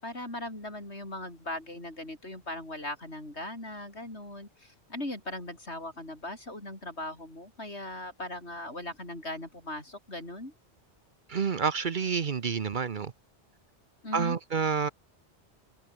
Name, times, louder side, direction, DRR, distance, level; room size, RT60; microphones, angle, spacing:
voice 1, 0.0-10.5 14.0-14.4, left 1 dB, 80° left, 7.3 m, -39 dB
voice 2, 11.3-13.1 14.1-14.9, right 6 dB, 50° right, 0.9 m, -28 dB
open air
omnidirectional pair, 1.1 m